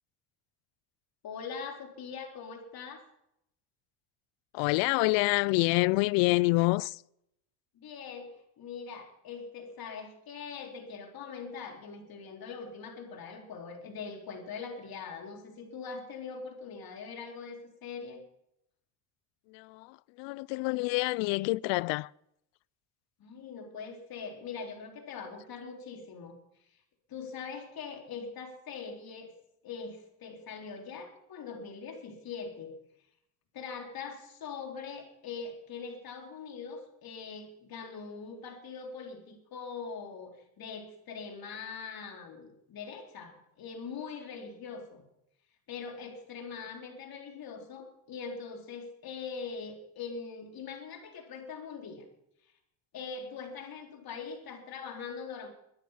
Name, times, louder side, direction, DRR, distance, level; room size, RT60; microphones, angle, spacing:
voice 1, 1.2-3.0 7.7-8.3 8.6-18.2 23.2-26.4 26.7-26.8 27.1-29.3 29.6-32.7 33.5-45.0 45.7-52.1 52.9-55.5, left 5 dB, 50° left, 3.8 m, -42 dB
voice 2, 4.5-7.0 19.5-22.1, left 24 dB, 70° left, 0.5 m, -27 dB
23.0 x 10.0 x 5.7 m
supercardioid pair, 90°, 46 cm